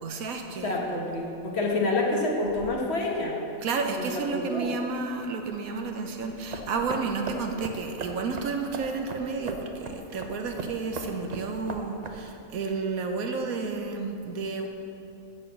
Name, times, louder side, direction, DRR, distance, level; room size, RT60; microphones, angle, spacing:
voice 1, 0.0-1.1 3.6-14.7, right 4 dB, 85° right, 4 dB, 1.3 m, -31 dB
voice 2, 0.6-3.4 3.9-4.7, left 2 dB, 50° left, -1 dB, 1.4 m, -28 dB
sound 1, 6.2-12.4, right 3 dB, 45° right, 0.5 m, -38 dB
10.0 x 4.4 x 7.3 m, 2.6 s
omnidirectional pair, 1.4 m